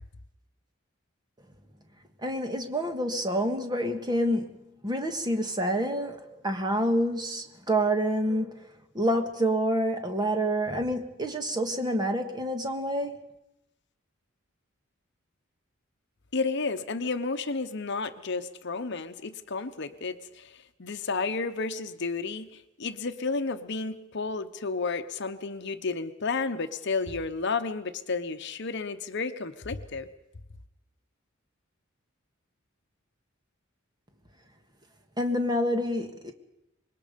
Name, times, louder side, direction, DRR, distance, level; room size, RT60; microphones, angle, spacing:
voice 1, 2.2-4.5 4.8-8.7 8.9-13.3 35.2-36.3, equal, 20° right, 5 dB, 1.8 m, -28 dB
voice 2, 16.3-22.5 22.8-30.1, left 4 dB, 60° left, 9 dB, 0.9 m, -32 dB
25.5 x 21.0 x 5.3 m, 0.88 s
head